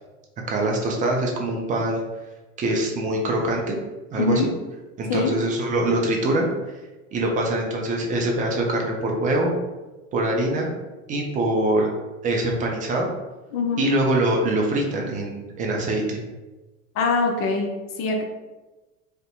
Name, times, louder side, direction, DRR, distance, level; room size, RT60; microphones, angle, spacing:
voice 1, 0.5-2.0 2.6-3.8 4.1-4.5 5.0-6.5 7.1-9.5 10.1-10.7 11.1-11.9 12.2-13.1 13.8-16.2, right 1 dB, 20° right, 0 dB, 0.4 m, -23 dB
voice 2, 4.2-4.5 5.1-5.4 13.5-13.9 17.0-18.2, left 3 dB, 35° left, 3 dB, 0.5 m, -23 dB
2.5 x 2.1 x 2.6 m, 1.1 s
figure-of-eight pair, 70°, 39 cm